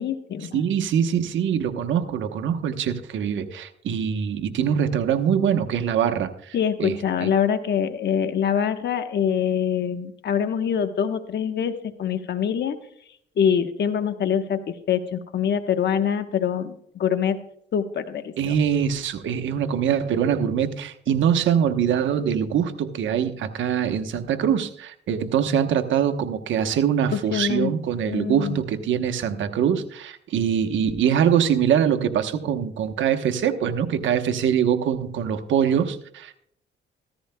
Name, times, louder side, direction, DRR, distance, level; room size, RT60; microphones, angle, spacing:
voice 1, 0.0-0.6 6.5-12.8 13.4-17.4 17.7-18.5 27.1-27.7 28.1-28.6, left 8 dB, 60° left, 9 dB, 1.1 m, -24 dB
voice 2, 0.5-6.9 7.2-7.3 18.4-36.4, right 8 dB, 75° right, 8 dB, 1.1 m, -23 dB
15.0 x 14.0 x 2.2 m, 0.68 s
cardioid pair, 90°, 20 cm